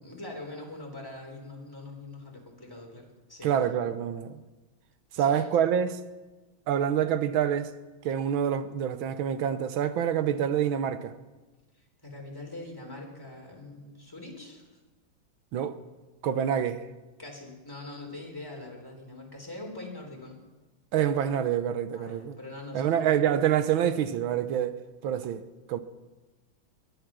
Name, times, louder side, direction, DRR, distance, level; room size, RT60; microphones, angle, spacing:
voice 1, 0.0-3.5 5.1-5.5 11.7-14.7 17.2-20.4 21.9-23.2, left 2 dB, 10° left, 3.4 m, -43 dB
voice 2, 3.4-4.4 5.1-6.0 6.7-7.7 8.0-11.1 15.5-15.8 16.2-16.9 20.9-22.4 22.7-25.8, right 9 dB, 75° right, 1.6 m, -27 dB
21.5 x 10.5 x 6.2 m
omnidirectional pair, 2.2 m